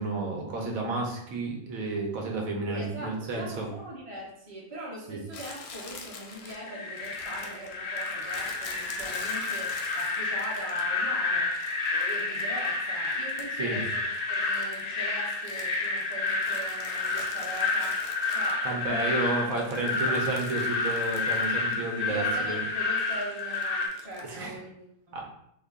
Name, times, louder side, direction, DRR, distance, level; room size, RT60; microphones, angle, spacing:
voice 1, 0.0-3.7 5.1-5.2 13.6-13.8 18.6-22.6 24.3-24.6 25.1-25.3, right 3 dB, 85° right, 0 dB, 1.2 m, -31 dB
voice 2, 2.7-18.0 18.3-20.2 22.0-25.2, right 1 dB, 25° right, -6 dB, 1.1 m, -42 dB
Crumpling crinkling, 5.3-11.1 11.5-13.7 14.0-19.0 19.4-21.8 22.1-22.2 23.0-24.4, left 4 dB, 60° left, 0.7 m, -46 dB
sound 1, 6.5-23.9, left 3 dB, 90° left, 0.3 m, -30 dB
3.7 x 2.1 x 3.5 m, 0.73 s
omnidirectional pair, 1.4 m